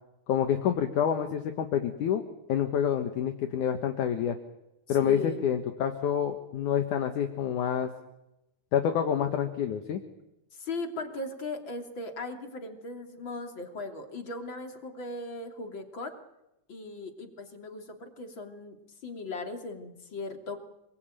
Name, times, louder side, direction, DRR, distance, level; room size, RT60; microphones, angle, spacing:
voice 1, 0.3-2.2 2.5-4.4 4.9-7.9 8.7-10.0, left 9 dB, 65° left, 6 dB, 2.7 m, -27 dB
voice 2, 4.9-5.5 10.5-16.1 16.7-18.8 19.0-20.6, left 2 dB, 35° left, 4 dB, 3.4 m, -38 dB
27.0 x 22.0 x 9.1 m, 0.91 s
omnidirectional pair, 4.1 m